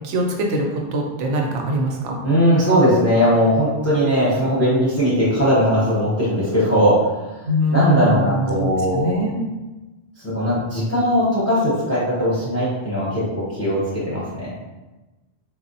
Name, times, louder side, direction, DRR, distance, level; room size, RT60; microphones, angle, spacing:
voice 1, 0.0-2.1 7.5-9.4, equal, 85° right, 1 dB, 0.9 m, -22 dB
voice 2, 2.2-7.4 7.7-9.2 10.2-14.5, equal, 15° left, -8 dB, 0.6 m, -19 dB
3.5 x 2.0 x 2.6 m, 1.1 s
omnidirectional pair, 1.2 m